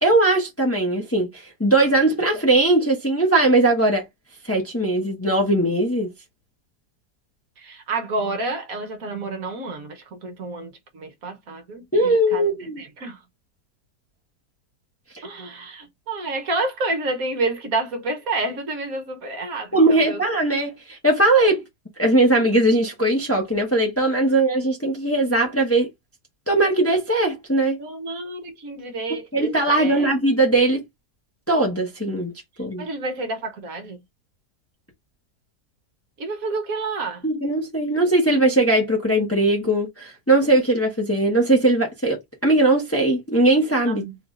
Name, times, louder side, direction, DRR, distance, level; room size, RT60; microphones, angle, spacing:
voice 1, 0.0-4.1 4.4-6.1 11.9-12.8 19.7-21.6 22.0-25.9 26.5-27.8 29.3-30.8 31.5-32.3 32.6-32.9 37.2-44.0, right 2 dB, 10° left, 1.0 m, -19 dB
voice 2, 7.6-13.2 15.2-20.4 27.8-30.1 32.8-34.0 36.2-37.3 43.9-44.2, right 2 dB, 60° right, 1.4 m, -29 dB
3.8 x 2.6 x 3.7 m
omnidirectional pair, 1.7 m